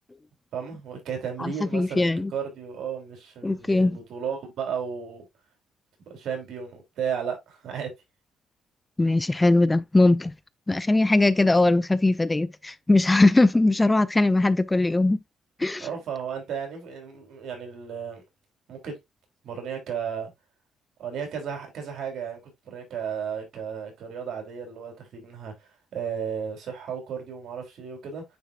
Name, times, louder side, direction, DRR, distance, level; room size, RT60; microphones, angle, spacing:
voice 1, 0.5-5.2 6.1-7.9 15.8-18.2 18.7-19.0 19.4-20.3 21.0-28.2, right 7 dB, 70° right, 3.3 m, -34 dB
voice 2, 1.4-2.3 3.4-4.0 9.0-10.3 10.7-15.2 15.6-15.9, left 2 dB, 15° left, 0.4 m, -20 dB
9.4 x 4.1 x 2.4 m
cardioid pair, 90°, 0 cm